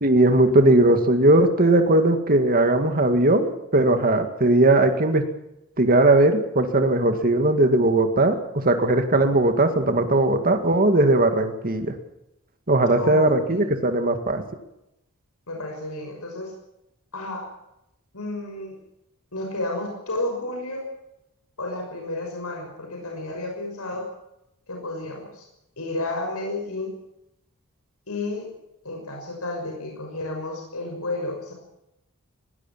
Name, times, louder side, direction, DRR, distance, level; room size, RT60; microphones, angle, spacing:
voice 1, 0.0-5.2 5.8-8.4 8.6-11.9 12.7-14.4, right 2 dB, 40° right, 6 dB, 2.1 m, -19 dB
voice 2, 13.0-13.6 15.5-16.5 17.1-17.5 18.1-18.8 19.3-20.8 21.6-24.0 24.7-25.5 25.8-26.9 28.1-28.5 28.8-31.5, left 2 dB, 75° left, 1 dB, 6.3 m, -31 dB
21.0 x 18.5 x 7.4 m, 0.86 s
head